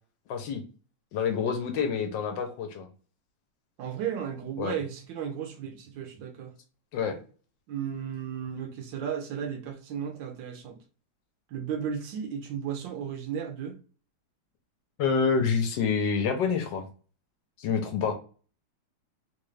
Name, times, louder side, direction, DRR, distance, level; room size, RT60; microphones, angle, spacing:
voice 1, 0.3-0.6 1.1-2.9 4.6-4.8 6.9-7.2 15.0-16.8 17.6-18.1, left 6 dB, 70° left, 1.2 m, -27 dB
voice 2, 3.8-6.5 7.7-10.8 11.5-13.8, right 8 dB, 75° right, 1.2 m, -34 dB
3.8 x 2.2 x 3.1 m
omnidirectional pair, 2.2 m